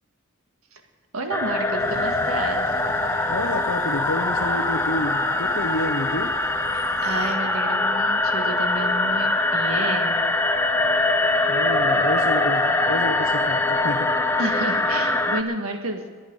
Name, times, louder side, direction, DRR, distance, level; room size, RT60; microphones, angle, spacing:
voice 1, 1.1-2.7 6.7-10.2 14.4-16.0, right 2 dB, 80° right, 5 dB, 1.7 m, -30 dB
sound 1, 1.3-15.4, left 2 dB, 10° left, 0.7 m, -23 dB
sound 2, 1.8-7.3, left 2 dB, 90° left, 1.7 m, -41 dB
voice 2, 3.3-6.3 11.5-14.1, left 2 dB, 70° left, 4 dB, 0.7 m, -29 dB
22.5 x 8.8 x 5.3 m, 1.4 s
head